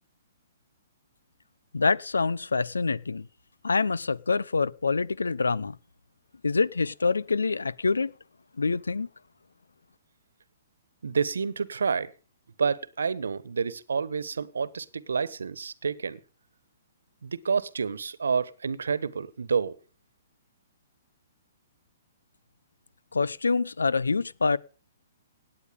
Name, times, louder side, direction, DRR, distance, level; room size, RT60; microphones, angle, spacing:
voice 1, 1.7-3.3 3.6-5.8 6.4-8.1 8.6-9.1 23.1-24.6, left 4 dB, 90° left, 0.8 m, -26 dB
voice 2, 11.0-12.1 12.6-16.2 17.2-19.8, right 5 dB, 80° right, 1.3 m, -29 dB
18.0 x 9.4 x 5.2 m
hypercardioid pair, 130°, 0 cm